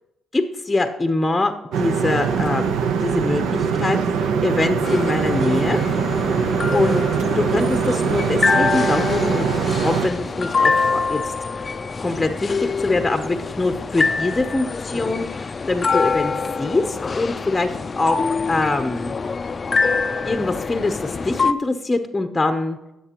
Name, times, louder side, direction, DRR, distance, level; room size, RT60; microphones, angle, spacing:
voice 1, 0.3-1.5 1.8-2.7 3.0-5.8 6.7-7.0 7.3-9.5 9.7-11.2 11.6-11.7 12.0-19.1 20.2-22.8, left 2 dB, 15° left, 7 dB, 0.7 m, -23 dB
sound 1, 1.7-10.1, right 6 dB, 85° right, 0.7 m, -22 dB
sound 2, 4.8-21.5, left 4 dB, 35° left, 0.4 m, -25 dB
16.5 x 7.5 x 3.0 m, 0.90 s
cardioid pair, 90°, 0 cm